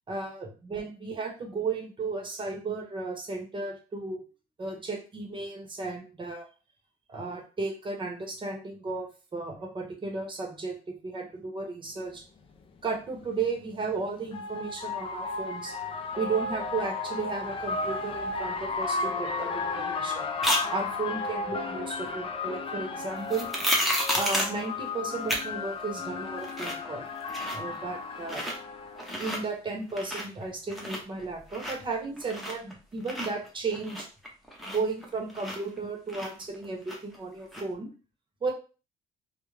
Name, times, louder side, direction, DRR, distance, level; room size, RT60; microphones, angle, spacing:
voice 1, 0.1-4.2 4.6-6.5 7.1-12.2 12.8-15.8 16.2-20.3 20.7-23.5 24.1-27.1 27.5-28.4 29.2-34.1 34.7-37.9 38.4-38.5, right 4 dB, 30° right, 2 dB, 0.8 m, -34 dB
sound 1, 12.1-12.2 13.7-29.3, left 4 dB, 30° left, 0.4 m, -34 dB
sound 2, 20.4-20.6 23.3-24.6 25.3-25.4 25.8-25.9 26.3-26.8 27.1-27.7 28.2-28.6 28.9-29.4 29.8-30.4 30.7-32.7 33.0-35.8 36.1-37.2 37.5-37.6, equal, ahead, 0.7 m, -31 dB
2.4 x 2.1 x 3.1 m, 0.35 s
cardioid pair, 110°, 17 cm